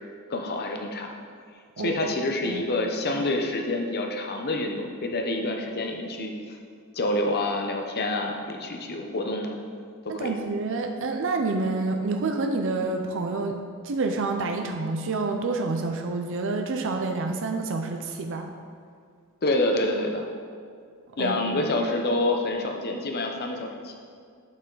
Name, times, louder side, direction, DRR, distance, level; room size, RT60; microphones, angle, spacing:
voice 1, 0.3-1.1 1.8-6.6 6.9-9.6 10.1-10.3 19.4-20.3 21.2-23.9, left 2 dB, 45° left, 2 dB, 0.8 m, -27 dB
voice 2, 10.1-13.6 13.8-18.5 21.2-21.7, right 3 dB, 60° right, 4 dB, 0.5 m, -28 dB
8.3 x 5.7 x 3.9 m, 2.2 s
head